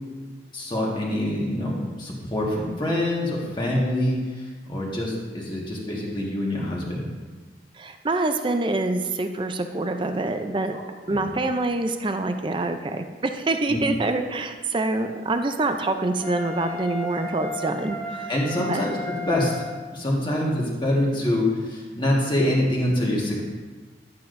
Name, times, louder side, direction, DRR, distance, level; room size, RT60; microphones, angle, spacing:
voice 1, 0.5-7.1 10.7-10.8 11.1-11.2 13.7-13.8 18.3-19.5 19.9-23.4, left 1 dB, 25° left, -3 dB, 1.5 m, -25 dB
voice 2, 7.8-10.8 11.1-18.3 18.6-18.8, right 2 dB, 25° right, 7 dB, 0.5 m, -26 dB
Wind instrument woodwind instrument, 16.2-20.0, left 3 dB, 5° left, 0.7 m, -35 dB
11.5 x 8.5 x 2.6 m, 1.4 s
head